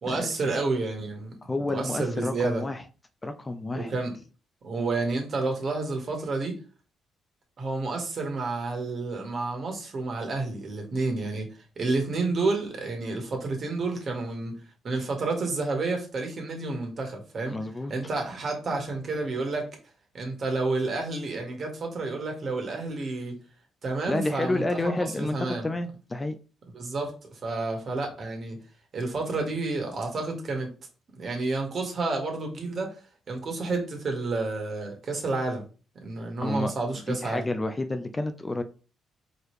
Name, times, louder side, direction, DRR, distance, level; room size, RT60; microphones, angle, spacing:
voice 1, 0.0-1.3 1.7-2.6 3.7-4.2 4.6-6.6 7.6-11.5 11.8-14.6 14.8-17.6 17.9-19.7 20.1-23.4 23.8-25.7 26.7-27.1 27.4-28.6 28.9-30.7 31.2-33.0 33.3-35.6 36.0-37.4, right 3 dB, 50° right, 1.7 m, -30 dB
voice 2, 1.4-2.8 3.2-3.9 17.5-17.9 24.1-26.4 36.4-36.7 37.1-38.6, left 2 dB, 20° left, 0.5 m, -30 dB
4.6 x 3.3 x 3.1 m
cardioid pair, 90°, 0 cm